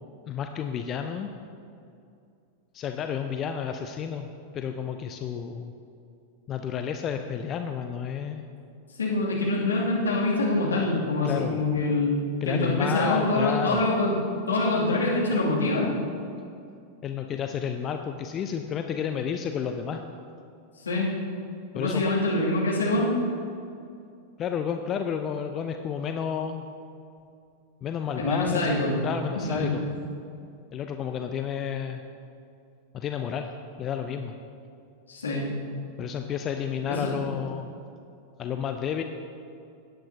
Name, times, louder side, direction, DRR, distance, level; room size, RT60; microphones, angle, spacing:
voice 1, 0.3-1.3 2.7-4.3 4.5-5.7 6.5-8.4 11.2-11.6 12.4-13.8 17.0-20.0 21.7-22.1 24.4-26.7 27.8-29.9 30.7-32.0 32.9-33.5 33.8-34.3 36.0-37.7 38.4-39.0, left 7 dB, 30° left, 6 dB, 0.5 m, -31 dB
voice 2, 9.0-12.2 12.5-14.1 14.5-15.9 20.8-21.1 21.7-23.1 28.2-29.0 29.3-29.7 35.1-35.5 36.9-37.2, left 2 dB, 70° left, -5 dB, 2.4 m, -25 dB
17.0 x 8.9 x 2.8 m, 2.5 s
figure-of-eight pair, 90°, 0 cm